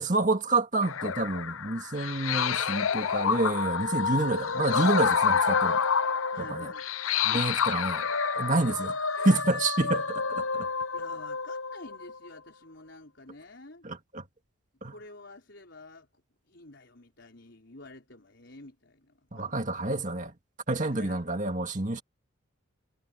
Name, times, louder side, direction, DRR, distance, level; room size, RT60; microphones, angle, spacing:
voice 1, 0.0-5.8 6.5-6.7 7.2-8.1 8.4-8.9 9.2-10.7 13.8-14.2 14.8-14.9 19.3-20.3 20.7-22.0, right 2 dB, 35° right, 2.0 m, -28 dB
sound 1, 0.8-9.4, left 7 dB, 75° left, 0.6 m, -29 dB
sound 2, 2.3-7.2 7.6-12.4, left 4 dB, 90° left, 7.0 m, -32 dB
voice 2, 6.3-6.9 7.3-7.6 8.5-8.7 10.9-13.8 14.9-16.1 16.5-19.6 20.9-21.2, left 2 dB, 55° left, 5.1 m, -49 dB
head